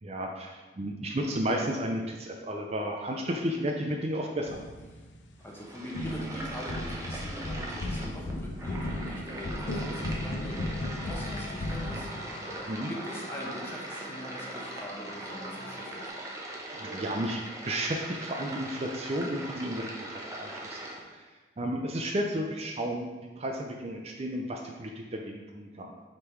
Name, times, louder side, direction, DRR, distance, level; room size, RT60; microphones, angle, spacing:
voice 1, 0.0-4.6 12.7-12.9 16.8-17.4 17.7-20.8 21.1-21.2 21.6-26.0, equal, 35° right, 2 dB, 0.5 m, -33 dB
sound 1, 4.5-5.6 5.9-12.7, left 1 dB, 80° left, 0.6 m, -36 dB
voice 2, 5.4-12.5 12.9-16.1, equal, 15° left, -3 dB, 1.1 m, -43 dB
sound 2, 5.4-21.0, right 2 dB, 15° right, 0.9 m, -40 dB
sound 3, 8.9-16.1, left 2 dB, 35° left, 0.8 m, -46 dB
6.5 x 3.8 x 4.6 m, 1.3 s
head